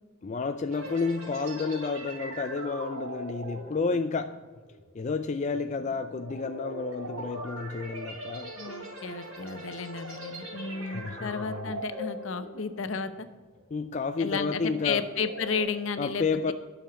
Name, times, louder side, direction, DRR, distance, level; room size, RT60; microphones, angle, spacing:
voice 1, 0.2-4.4 4.9-8.5 10.9-11.7 13.7-15.0 16.0-16.5, left 4 dB, 35° left, 8 dB, 0.4 m, -31 dB
sound 1, 0.7-13.2 13.5-13.8 14.3-15.6, equal, 75° right, 3.3 m, -41 dB
voice 2, 8.6-13.3 14.2-16.2, left 5 dB, 65° left, 11 dB, 0.8 m, -33 dB
10.5 x 6.4 x 7.0 m, 1.4 s
head